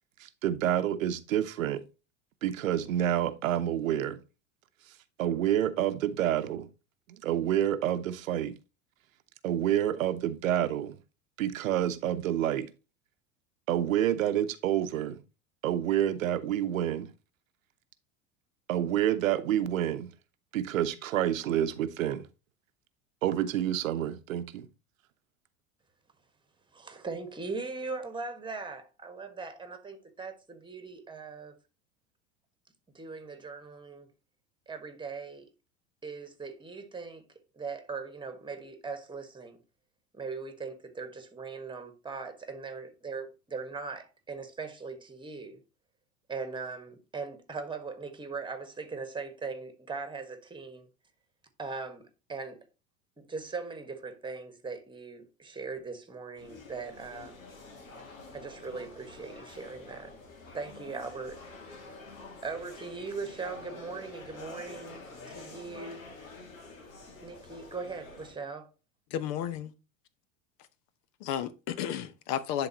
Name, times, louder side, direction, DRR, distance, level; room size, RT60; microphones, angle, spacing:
voice 1, 0.2-1.8 2.4-4.2 5.2-6.7 7.1-8.6 9.4-11.0 11.4-12.7 13.7-15.2 15.6-17.1 18.7-20.1 20.5-22.2 23.2-24.7, right 11 dB, 80° right, 0.8 m, -28 dB
voice 2, 26.7-31.6 32.9-34.1 34.7-35.5 36.0-37.2 37.5-39.6 40.1-45.6 46.3-50.9 51.6-52.7 53.2-57.4 58.3-60.1 60.5-61.4 62.4-66.1 67.2-68.7, right 4 dB, 10° right, 1.5 m, -40 dB
sound 1, 56.4-68.3, left 3 dB, 85° left, 1.8 m, -48 dB
voice 3, 69.1-69.7 71.2-72.7, left 10 dB, 55° left, 0.9 m, -33 dB
10.5 x 3.9 x 2.9 m
hypercardioid pair, 85°, 40 cm